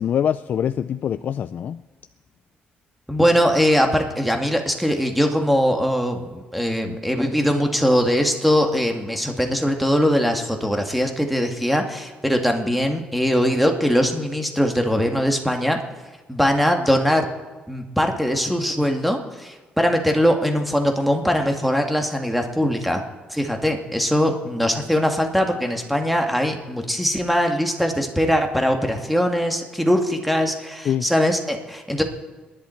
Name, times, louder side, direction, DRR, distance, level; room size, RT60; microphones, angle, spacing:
voice 1, 0.0-1.8 30.8-31.1, left 9 dB, 60° left, 11 dB, 0.4 m, -24 dB
voice 2, 3.1-15.8 16.3-17.3 17.7-23.0 23.3-32.0, equal, ahead, 4 dB, 2.0 m, -21 dB
27.0 x 11.0 x 4.5 m, 1.2 s
cardioid pair, 105°, 3 cm